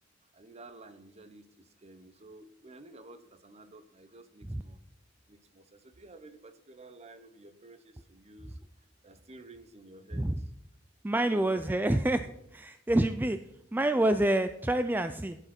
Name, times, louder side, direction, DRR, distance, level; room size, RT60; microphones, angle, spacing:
voice 1, 0.3-4.8 5.3-8.6 9.0-10.5 11.1-12.0, right 2 dB, 35° right, 11 dB, 0.9 m, -52 dB
voice 2, 11.0-12.3 12.5-13.4 13.7-15.4, right 1 dB, 10° right, 9 dB, 0.4 m, -27 dB
15.0 x 9.0 x 4.4 m, 0.81 s
head